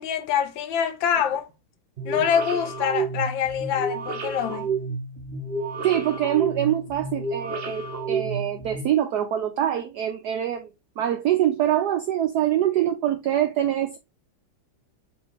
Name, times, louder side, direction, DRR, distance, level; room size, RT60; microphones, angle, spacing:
voice 1, 0.0-1.5 2.0-4.7, left 8 dB, 75° left, 1.2 m, -25 dB
sound 1, 2.0-8.8, right 4 dB, 60° right, 0.6 m, -30 dB
voice 2, 5.8-10.7 11.0-14.0, right 11 dB, 85° right, 0.8 m, -24 dB
4.4 x 3.2 x 3.0 m
omnidirectional pair, 2.3 m